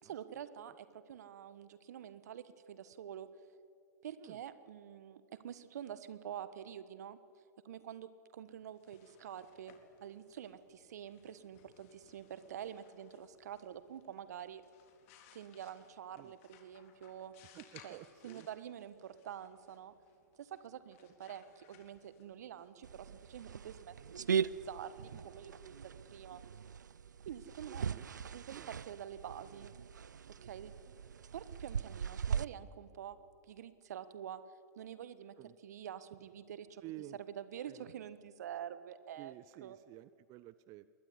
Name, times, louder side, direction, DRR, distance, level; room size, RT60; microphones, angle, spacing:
voice 1, 0.0-3.3 4.0-7.2 7.6-14.6 15.3-17.3 17.8-19.9 20.4-26.4 27.2-28.0 28.2-29.7 30.4-30.7 31.3-33.2 33.5-34.4 34.8-35.3 35.6-36.8 37.4-39.3 39.6-39.8, right 9 dB, 65° right, 14 dB, 1.4 m, -47 dB
sound 1, 8.6-24.3, left 8 dB, 50° left, 3.4 m, -65 dB
voice 2, 17.5-18.5 25.1-25.5 27.7-28.1 28.5-28.7 30.9-31.0 35.4-35.6 36.8-37.2 37.7-37.9 39.2-40.9, right 16 dB, 35° right, 16 dB, 0.6 m, -52 dB
sound 2, 22.8-32.4, right 7 dB, 80° right, 0.5 m, -40 dB
21.5 x 19.0 x 9.9 m, 2.5 s
figure-of-eight pair, 110°, 10 cm